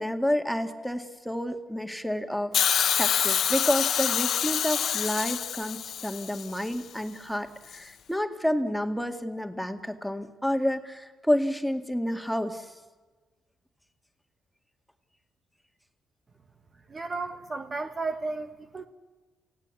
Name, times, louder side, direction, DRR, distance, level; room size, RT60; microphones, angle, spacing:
voice 1, 0.0-12.7, left 1 dB, ahead, 6 dB, 2.0 m, -30 dB
Hiss, 2.5-6.7 7.7-7.8, left 9 dB, 65° left, 1.2 m, -26 dB
voice 2, 16.9-18.9, right 3 dB, 30° right, 7 dB, 1.2 m, -33 dB
29.5 x 16.5 x 8.3 m, 1.3 s
cardioid pair, 90°, 0 cm